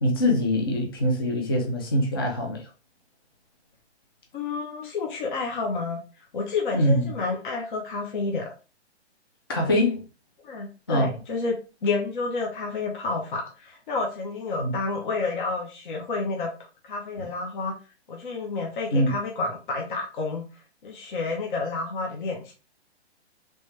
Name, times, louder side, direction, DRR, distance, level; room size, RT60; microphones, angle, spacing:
voice 1, 0.0-2.6 6.7-7.1 9.5-10.0 10.9-11.1 14.6-14.8 18.9-19.1, left 1 dB, 20° left, 0.4 m, -23 dB
voice 2, 4.3-6.0 6.3-8.5 9.6-9.7 10.4-11.5 11.8-16.5 16.8-17.7 18.1-20.5 20.8-22.5, left 3 dB, 50° left, 0.9 m, -30 dB
3.1 x 3.1 x 3.2 m
hypercardioid pair, 165°, 34 cm